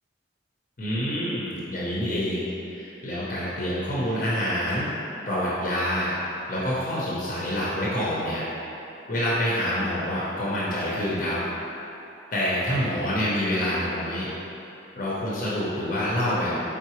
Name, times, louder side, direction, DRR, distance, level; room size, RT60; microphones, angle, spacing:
voice 1, 0.8-4.9 5.3-6.1 6.5-8.5 9.1-11.4 12.3-14.3 15.0-16.6, equal, 45° left, -8 dB, 0.7 m, -27 dB
4.8 x 3.7 x 3.0 m, 2.9 s
head